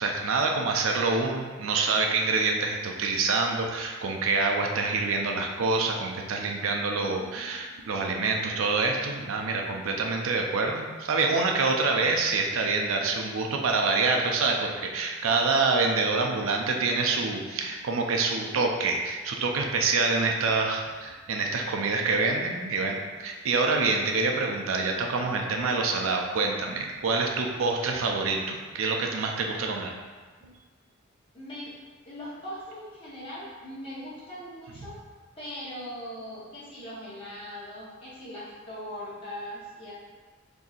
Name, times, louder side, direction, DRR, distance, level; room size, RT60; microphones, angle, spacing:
voice 1, 0.0-29.9 34.8-34.9, right 3 dB, 80° right, 2 dB, 0.4 m, -26 dB
voice 2, 7.0-8.1 30.4-30.5 31.3-31.8 32.0-35.0 35.4-39.9, equal, 25° left, -10 dB, 0.9 m, -40 dB
3.9 x 2.7 x 2.4 m, 1.4 s
head